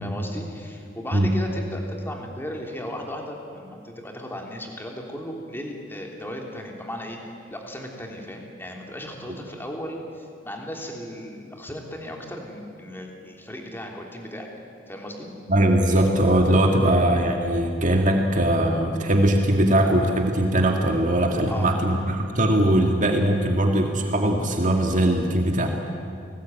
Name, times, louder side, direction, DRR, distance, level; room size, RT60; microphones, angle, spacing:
voice 1, 0.0-7.2 7.5-14.5 14.9-15.3 21.5-21.7, left 1 dB, 10° left, 1 dB, 3.4 m, -36 dB
voice 2, 15.5-25.7, right 1 dB, 40° right, 2 dB, 2.1 m, -20 dB
29.5 x 19.5 x 9.3 m, 2.4 s
head